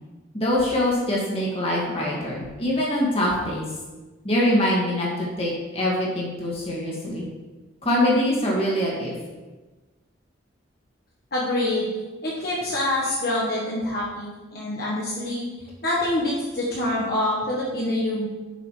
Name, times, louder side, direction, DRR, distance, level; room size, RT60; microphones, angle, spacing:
voice 1, 0.3-3.7 4.2-7.2 7.8-9.1, left 1 dB, 30° left, -5 dB, 2.0 m, -24 dB
voice 2, 11.3-11.9 12.2-15.4 15.8-18.3, left 1 dB, 50° left, -5 dB, 1.4 m, -26 dB
9.7 x 5.7 x 3.3 m, 1.2 s
head